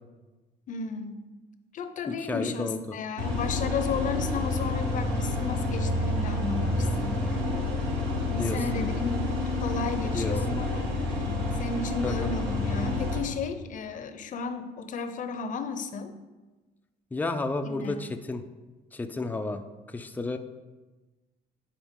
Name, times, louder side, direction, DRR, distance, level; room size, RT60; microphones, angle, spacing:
voice 1, 0.7-1.3 1.7-7.4 8.1-10.9 11.5-16.1 17.6-17.9, left 5 dB, 50° left, 9 dB, 0.7 m, -34 dB
voice 2, 2.1-3.0 4.3-4.4 8.4-8.8 10.1-10.6 12.0-12.4 17.1-18.4 18.9-19.6 19.9-20.4, left 3 dB, 10° left, 7 dB, 0.4 m, -32 dB
sound 1, 3.2-13.2, left 2 dB, 80° right, 1.9 m, -29 dB
10.0 x 4.4 x 3.7 m, 1.2 s
cardioid pair, 110°, 17 cm